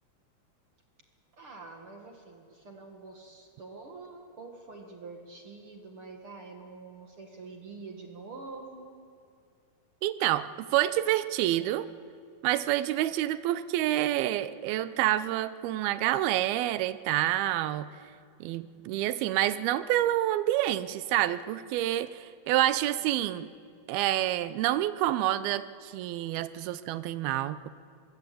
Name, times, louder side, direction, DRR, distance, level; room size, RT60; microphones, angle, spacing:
voice 1, 1.4-8.9, right 3 dB, 45° right, 2 dB, 2.0 m, -46 dB
voice 2, 10.0-11.9 12.4-17.9 18.4-23.5 23.9-27.7, right 14 dB, 85° right, 14 dB, 2.6 m, -28 dB
23.5 x 22.0 x 8.4 m, 2.3 s
omnidirectional pair, 4.4 m